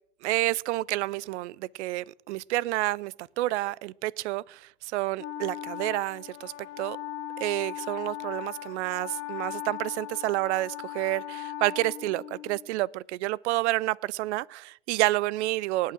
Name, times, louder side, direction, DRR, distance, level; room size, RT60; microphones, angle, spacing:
voice 1, 0.2-4.6 4.9-7.0 7.4-15.9, right 18 dB, 75° right, 0.5 m, -29 dB
Wind instrument woodwind instrument, 5.2-12.7, left 12 dB, 80° left, 1.3 m, -38 dB
18.5 x 8.5 x 6.1 m
hypercardioid pair, 100°, 35 cm